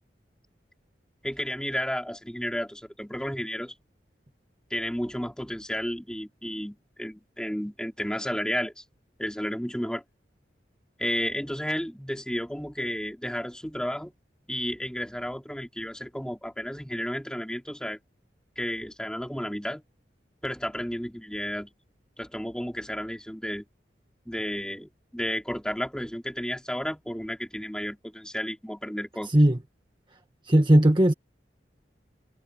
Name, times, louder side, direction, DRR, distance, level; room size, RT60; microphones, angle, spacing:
voice 1, 1.2-3.7 4.7-8.8 9.2-10.0 11.0-14.1 14.5-18.0 18.6-19.8 20.4-21.7 22.2-23.6 24.3-29.3, equal, 5° left, 3.6 m, -32 dB
voice 2, 29.3-29.6 30.5-31.1, right 1 dB, 25° right, 1.7 m, -18 dB
head